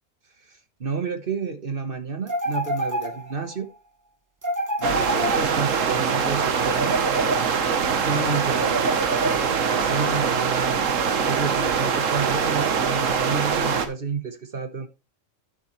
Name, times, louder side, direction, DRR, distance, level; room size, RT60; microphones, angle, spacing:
voice 1, 0.5-3.7 4.8-7.0 8.0-9.0 9.7-10.9 11.1-14.9, right 5 dB, 45° right, 1.4 m, -30 dB
sound 1, 2.3-3.6 4.4-5.9 6.6-7.8 8.6-9.8, right 1 dB, 15° right, 1.1 m, -28 dB
sound 2, 4.8-13.9, right 6 dB, 75° right, 1.5 m, -23 dB
12.0 x 7.0 x 3.2 m
omnidirectional pair, 1.4 m